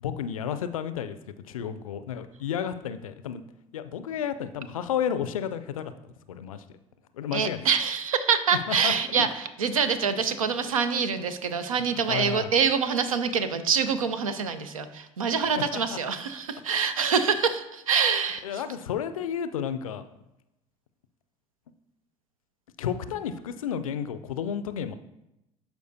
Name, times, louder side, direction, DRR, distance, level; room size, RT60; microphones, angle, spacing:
voice 1, 0.0-1.2 1.5-3.4 3.7-6.6 7.1-7.7 8.7-9.3 12.1-12.5 15.6-16.0 16.7-16.8 18.4-20.0 22.8-24.9, left 8 dB, 80° left, 11 dB, 0.4 m, -32 dB
voice 2, 7.3-18.6, right 6 dB, 80° right, 11 dB, 0.6 m, -25 dB
11.5 x 4.7 x 2.7 m, 0.89 s
figure-of-eight pair, 60°, 18 cm